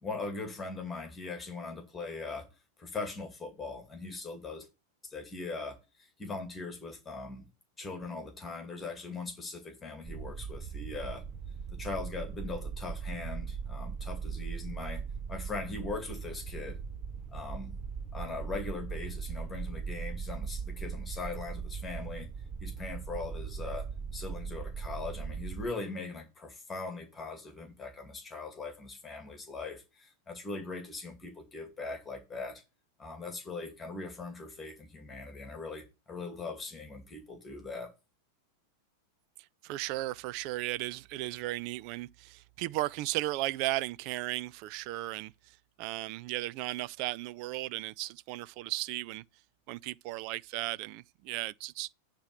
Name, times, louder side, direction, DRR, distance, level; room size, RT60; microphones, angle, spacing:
voice 1, 0.0-2.5 2.8-4.7 5.0-7.5 7.8-11.2 11.7-15.0 15.3-16.8 17.3-17.8 18.1-22.3 22.6-32.6 33.0-37.9, left 3 dB, 15° left, 2.3 m, -40 dB
sound 1, 10.0-25.7, right 6 dB, 25° right, 0.8 m, -39 dB
voice 2, 39.6-49.2 49.7-51.9, right 17 dB, 45° right, 0.3 m, -35 dB
8.8 x 3.7 x 6.7 m
figure-of-eight pair, 90°, 0 cm